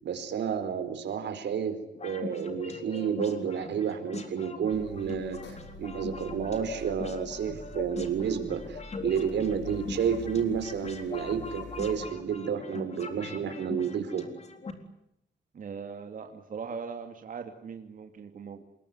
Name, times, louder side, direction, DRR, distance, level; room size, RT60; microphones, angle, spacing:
voice 1, 0.0-14.2, right 7 dB, 80° right, 9 dB, 4.6 m, -31 dB
sound 1, 1.9-14.7, left 3 dB, 35° left, 4.0 m, -41 dB
Car, 4.7-12.0, left 2 dB, 85° left, 7.1 m, -47 dB
voice 2, 15.5-18.6, right 5 dB, 50° right, 4 dB, 2.7 m, -40 dB
27.5 x 22.0 x 9.8 m, 0.78 s
wide cardioid pair, 150°, 18 cm